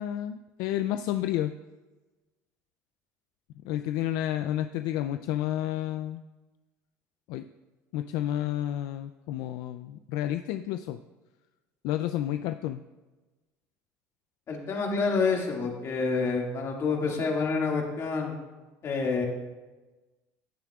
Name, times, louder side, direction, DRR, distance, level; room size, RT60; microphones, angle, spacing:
voice 1, 0.0-1.5 3.6-6.2 7.3-7.5 7.9-11.0 11.8-12.8, left 12 dB, 75° left, 9 dB, 0.4 m, -30 dB
voice 2, 14.5-18.4 18.8-19.2, left 4 dB, 45° left, 0 dB, 2.1 m, -28 dB
15.5 x 7.2 x 2.4 m, 1.2 s
supercardioid pair, 100°, 7 cm